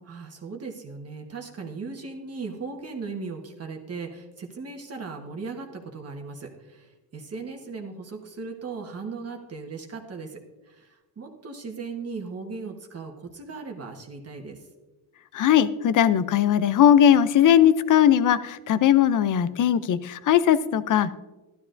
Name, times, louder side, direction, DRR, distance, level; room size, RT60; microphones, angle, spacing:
voice 1, 0.0-14.7, right 4 dB, 40° right, 2 dB, 1.3 m, -37 dB
voice 2, 15.3-21.1, left 10 dB, 50° left, 15 dB, 0.6 m, -19 dB
13.0 x 12.0 x 2.6 m, 1.2 s
cardioid pair, 100°, 39 cm